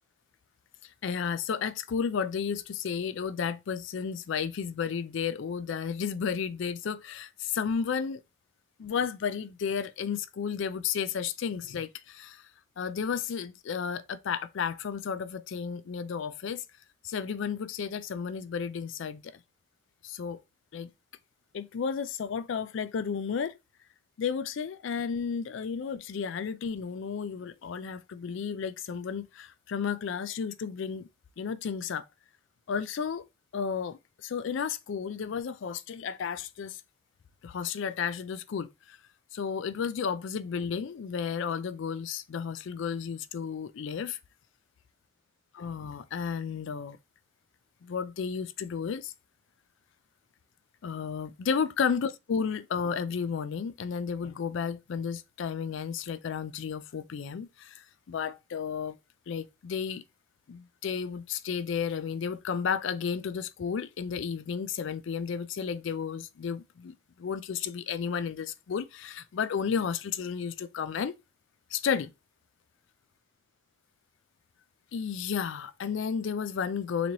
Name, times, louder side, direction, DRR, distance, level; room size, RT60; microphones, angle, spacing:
voice 1, 0.8-8.2 8.8-12.4 12.8-16.6 17.0-19.4 20.0-20.4 20.7-20.9 21.5-23.6 24.2-31.1 31.4-32.0 32.7-33.2 33.5-36.8 37.4-39.0 39.3-44.2 45.5-47.0 47.8-49.1 50.8-59.0 59.3-60.0 60.5-71.1 71.7-72.1 74.9-77.1, left 6 dB, 60° left, 0.3 m, -33 dB
4.0 x 3.0 x 2.8 m
head